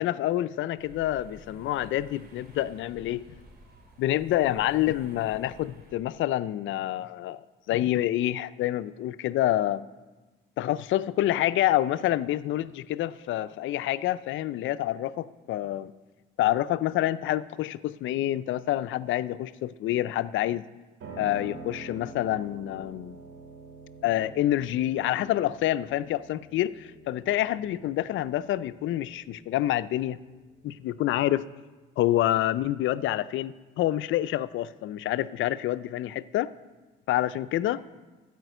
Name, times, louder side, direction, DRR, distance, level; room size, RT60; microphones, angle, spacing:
voice 1, 0.0-3.2 4.0-7.4 7.7-9.8 10.6-15.9 16.4-20.6 21.2-23.2 24.0-30.2 30.6-31.4 32.0-36.5 37.1-37.8, left 14 dB, 75° left, 16 dB, 0.4 m, -27 dB
sound 1, 0.8-5.9, right 2 dB, 55° right, 2.6 m, -52 dB
Piano, 21.0-30.9, right 3 dB, 80° right, 2.7 m, -47 dB
14.0 x 5.0 x 7.9 m, 1.2 s
cardioid pair, 90°, 20 cm